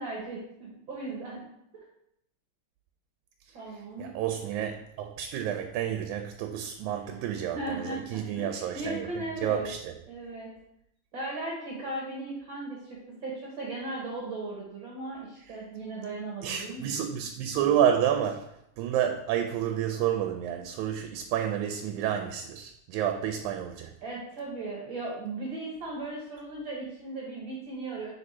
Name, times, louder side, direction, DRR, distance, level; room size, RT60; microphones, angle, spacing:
voice 1, 0.0-1.5 3.5-4.1 6.9-9.7 10.1-10.5 11.1-17.0 24.0-28.1, right 2 dB, 55° right, -4 dB, 1.5 m, -37 dB
voice 2, 4.0-9.9 15.5-15.6 16.4-18.5 18.8-23.9, right 9 dB, 85° right, 4 dB, 2.0 m, -30 dB
5.3 x 4.6 x 4.2 m, 0.78 s
omnidirectional pair, 3.4 m